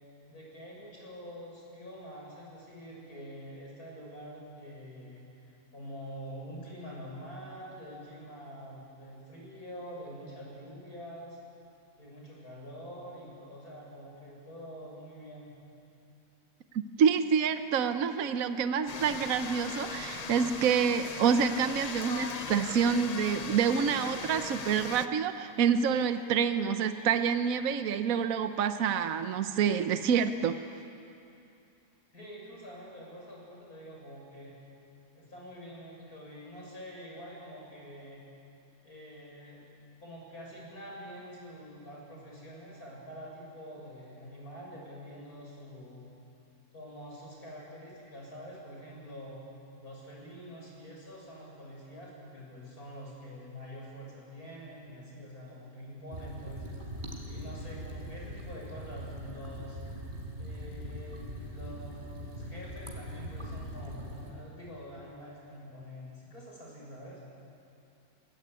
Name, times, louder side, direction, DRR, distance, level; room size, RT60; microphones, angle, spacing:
voice 1, 0.3-5.5 5.7-11.4 12.0-15.5 32.1-34.6 35.2-38.2 38.8-39.7 40.0-46.1 46.7-49.4 49.8-56.7 57.2-59.8 60.4-67.2, equal, 80° left, -3 dB, 7.6 m, -46 dB
voice 2, 17.0-30.6, right 7 dB, 70° right, 9 dB, 1.2 m, -27 dB
sound 1, 18.9-25.1, left 4 dB, 35° left, 0.7 m, -39 dB
sound 2, 56.1-64.3, equal, 30° right, 4.6 m, -41 dB
23.5 x 22.0 x 9.6 m, 2.7 s
omnidirectional pair, 1.6 m